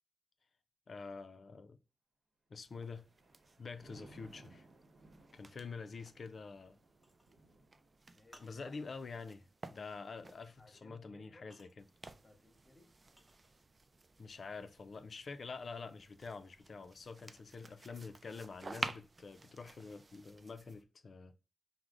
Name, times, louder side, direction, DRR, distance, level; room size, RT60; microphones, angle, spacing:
voice 1, 0.9-1.8 2.5-3.1 3.6-4.7 5.3-6.8 8.4-11.7 14.2-21.4, left 4 dB, 60° left, 0.4 m, -47 dB
sound 1, 2.6-10.8 11.8-20.8, right 3 dB, 35° right, 0.3 m, -51 dB
Thunder, 2.6-14.1 14.6-14.9, right 2 dB, 75° right, 0.9 m, -64 dB
sound 2, 7.0-13.9 14.2-17.2, equal, ahead, 0.7 m, -66 dB
voice 2, 8.1-8.6 10.6-11.5 12.0-12.9, left 1 dB, 25° left, 1.0 m, -63 dB
4.8 x 2.0 x 3.7 m
wide cardioid pair, 90°, 0 cm